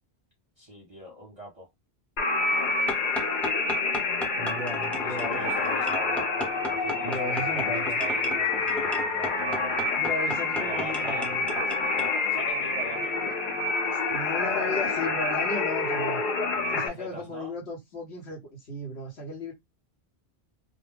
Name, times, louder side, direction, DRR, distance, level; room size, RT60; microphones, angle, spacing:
voice 1, 0.6-1.7 5.0-6.3 6.6-9.9 10.6-11.3 12.3-13.2 16.5-17.5, right 2 dB, 35° right, 0.7 m, -42 dB
sound 1, 2.2-16.9, left 3 dB, 55° left, 0.7 m, -27 dB
sound 2, 2.9-12.1, left 1 dB, ahead, 0.4 m, -35 dB
voice 2, 4.3-5.5 7.0-8.0 9.9-11.5 13.9-16.2 16.7-19.5, left 1 dB, 80° left, 1.1 m, -35 dB
2.4 x 2.1 x 3.2 m
omnidirectional pair, 1.1 m